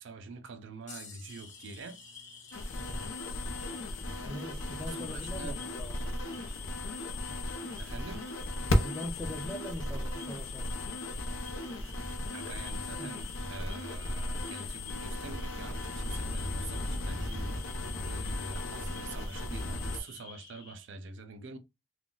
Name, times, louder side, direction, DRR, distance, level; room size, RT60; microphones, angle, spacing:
voice 1, 0.0-2.0 4.9-5.6 7.8-8.3 12.3-17.5 18.0-21.6, right 3 dB, 65° right, 0.5 m, -45 dB
sound 1, 0.9-9.1 9.8-9.9 12.2-12.3 13.3-13.5 14.6-14.7, left 4 dB, 40° left, 0.7 m, -56 dB
sound 2, 1.3-20.8, left 4 dB, 60° left, 1.3 m, -52 dB
sound 3, 2.5-20.0, left 1 dB, 85° left, 0.6 m, -35 dB
voice 2, 2.7-3.1 4.2-6.5 8.7-11.0 13.0-13.2, equal, ahead, 0.5 m, -42 dB
3.8 x 2.2 x 2.3 m
head